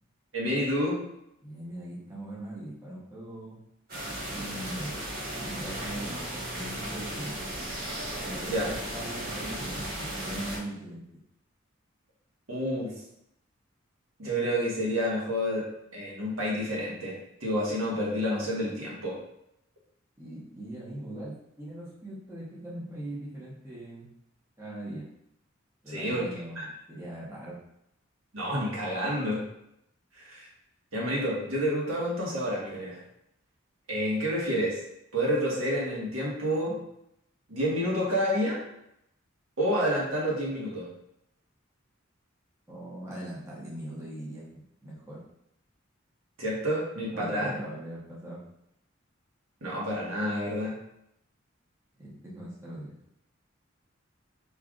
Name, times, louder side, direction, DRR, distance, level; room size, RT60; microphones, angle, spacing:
voice 1, 0.3-1.0 8.5-8.7 12.5-12.9 14.2-15.6 15.9-19.2 25.9-26.4 28.3-29.4 30.2-30.4 30.9-33.0 33.9-34.8 35.1-36.8 37.5-38.6 39.6-40.9 46.4-47.5 49.6-50.7, equal, 85° right, -5 dB, 1.5 m, -29 dB
voice 2, 1.4-3.6 4.3-4.9 5.4-7.3 8.2-11.0 20.2-24.1 24.6-25.1 25.8-27.6 42.7-45.2 47.1-48.4 52.0-53.0, right 1 dB, 15° right, -8 dB, 1.2 m, -40 dB
sound 1, 3.9-10.6, right 1 dB, 45° right, 1.5 m, -35 dB
5.5 x 3.3 x 2.5 m, 0.80 s
head